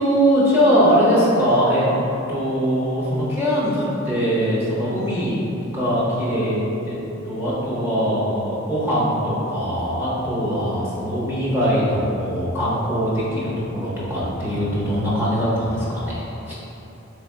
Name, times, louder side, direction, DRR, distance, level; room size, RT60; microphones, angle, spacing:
voice 1, 0.0-1.8 2.3-5.3 5.7-6.5 6.9-7.0 7.2-16.5, equal, 10° right, -9 dB, 1.0 m, -21 dB
3.7 x 3.3 x 3.6 m, 2.9 s
head